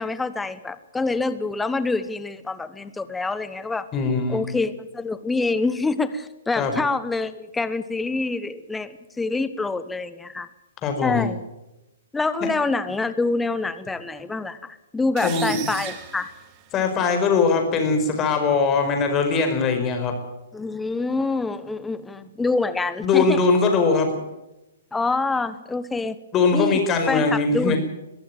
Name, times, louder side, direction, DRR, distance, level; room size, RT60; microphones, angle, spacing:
voice 1, 0.0-3.9 4.3-10.5 11.0-11.4 12.1-16.3 20.5-23.4 24.9-26.2 26.5-26.8 27.1-27.7, left 3 dB, 5° left, 13 dB, 1.1 m, -26 dB
voice 2, 3.9-4.5 6.6-6.8 10.8-11.3 15.2-15.6 16.7-20.1 23.0-24.2 26.3-27.8, left 4 dB, 25° left, 5 dB, 5.1 m, -21 dB
sound 1, 15.2-17.1, right 10 dB, 30° right, 2.4 m, -36 dB
22.5 x 14.5 x 9.2 m, 0.96 s
figure-of-eight pair, 120°, 0 cm